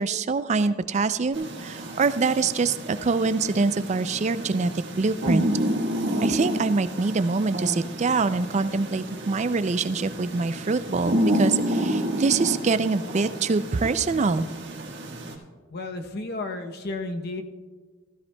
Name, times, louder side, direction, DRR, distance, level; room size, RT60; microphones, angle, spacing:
voice 1, 0.0-4.7 5.0-5.5 6.2-14.5, right 4 dB, 35° right, 13 dB, 0.4 m, -24 dB
sound 1, 1.3-15.3, equal, 55° right, 1.5 m, -30 dB
voice 2, 15.7-17.4, left 2 dB, 50° left, 6 dB, 0.8 m, -32 dB
15.0 x 13.5 x 2.2 m, 1.5 s
head